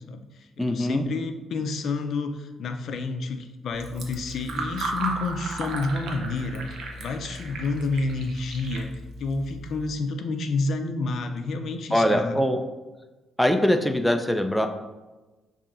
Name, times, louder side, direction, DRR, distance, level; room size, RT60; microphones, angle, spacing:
voice 1, 0.1-6.6 7.0-12.4, left 3 dB, 65° left, 6 dB, 0.5 m, -29 dB
voice 2, 0.6-1.0 11.9-12.6 13.4-14.7, equal, 5° left, 5 dB, 0.4 m, -22 dB
Fill (with liquid), 3.7-9.9, right 2 dB, 70° right, 0.7 m, -35 dB
6.8 x 2.7 x 2.5 m, 1.2 s
cardioid pair, 90°, 0 cm